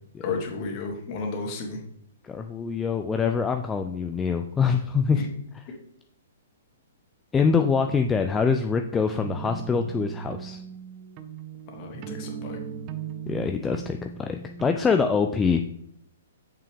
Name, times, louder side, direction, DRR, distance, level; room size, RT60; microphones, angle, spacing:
voice 1, 0.2-1.8 5.1-5.3 11.7-12.6, left 4 dB, 40° left, 1 dB, 1.7 m, -33 dB
voice 2, 2.2-5.2 7.3-10.6 13.3-15.6, left 5 dB, 15° left, 6 dB, 0.4 m, -24 dB
sound 1, 9.2-14.7, right 7 dB, 35° right, 0.6 m, -37 dB
6.9 x 5.6 x 3.5 m, 0.72 s
figure-of-eight pair, 120°, 0 cm